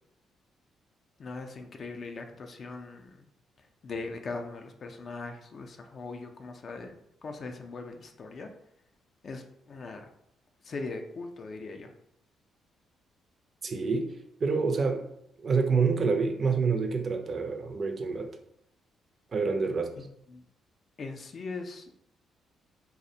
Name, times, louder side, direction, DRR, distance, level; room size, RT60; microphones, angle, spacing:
voice 1, 1.2-3.3 3.6-8.5 9.2-10.1 10.6-11.9 20.0-20.4 21.0-21.9, left 3 dB, 50° left, 4 dB, 0.3 m, -40 dB
voice 2, 13.6-14.1 14.4-15.1 15.4-18.3 19.3-19.9, right 4 dB, 45° right, 5 dB, 0.4 m, -27 dB
2.4 x 2.0 x 2.6 m, 0.74 s
cardioid pair, 90°, 0 cm